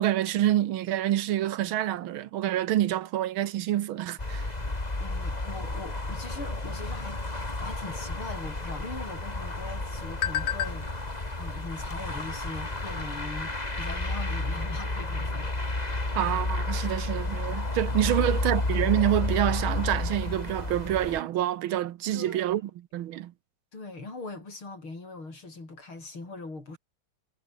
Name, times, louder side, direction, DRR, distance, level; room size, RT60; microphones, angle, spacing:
voice 1, 0.0-4.5 16.2-23.3, right 13 dB, 80° right, 1.7 m, -27 dB
sound 1, 4.2-21.2, left 2 dB, 20° left, 2.9 m, -31 dB
voice 2, 4.7-7.2 7.6-10.9 11.4-15.5 18.1-18.3 22.1-22.6 23.7-26.8, left 3 dB, 75° left, 7.4 m, -41 dB
sound 2, 8.2-13.3, left 10 dB, 60° left, 1.6 m, -38 dB
omnidirectional pair, 2.3 m